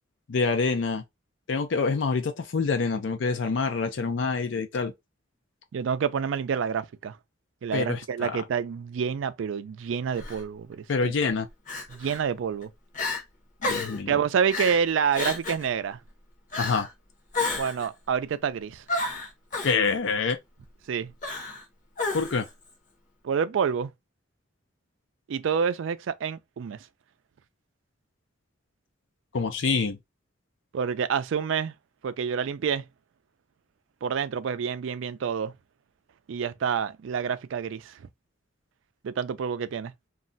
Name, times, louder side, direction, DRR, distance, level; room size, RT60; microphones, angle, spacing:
voice 1, 0.3-1.0 1.5-4.9 7.7-8.3 10.9-11.5 13.6-14.2 16.6-16.9 19.6-20.4 22.1-22.5 29.3-30.0, left 4 dB, 70° left, 0.5 m, -26 dB
voice 2, 5.7-7.2 7.6-11.1 11.9-12.7 14.1-16.0 17.5-18.8 20.9-21.1 23.2-23.9 25.3-26.9 30.7-31.7 32.0-32.9 34.0-35.5 36.3-38.0 39.0-39.9, right 7 dB, 75° right, 0.3 m, -28 dB
Crying sobbing, 10.2-10.4 11.7-12.2 12.6-12.7 12.9-13.2 13.6-14.0 14.5-14.8 15.1-15.7 16.5-16.9 17.3-17.9 18.9-19.8 21.2-21.6 22.0-22.5, left 3 dB, 40° left, 0.8 m, -31 dB
2.4 x 2.1 x 3.7 m
head